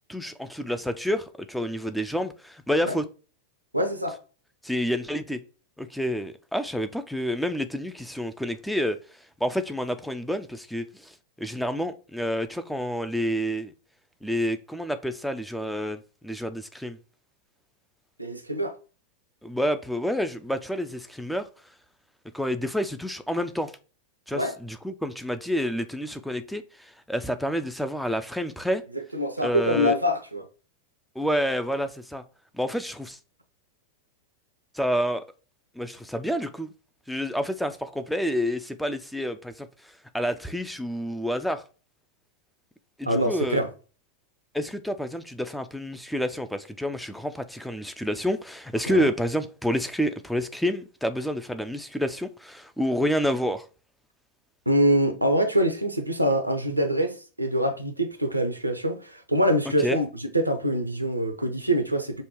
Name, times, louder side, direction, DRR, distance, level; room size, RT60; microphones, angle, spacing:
voice 1, 0.1-3.1 4.6-5.4 5.8-9.0 9.4-13.7 14.2-17.0 19.4-21.5 22.3-23.7 24.3-28.8 29.4-30.0 31.2-32.2 32.5-33.2 34.7-35.2 35.8-36.7 37.1-41.6 43.0-43.6 44.5-53.6 59.8-60.0, equal, ahead, 0.4 m, -29 dB
voice 2, 3.7-4.2 18.2-18.7 24.3-24.5 28.9-30.5 43.1-43.7 48.9-49.1 54.7-62.2, equal, 85° right, 0.6 m, -25 dB
5.3 x 2.2 x 3.0 m
figure-of-eight pair, 90°, 0 cm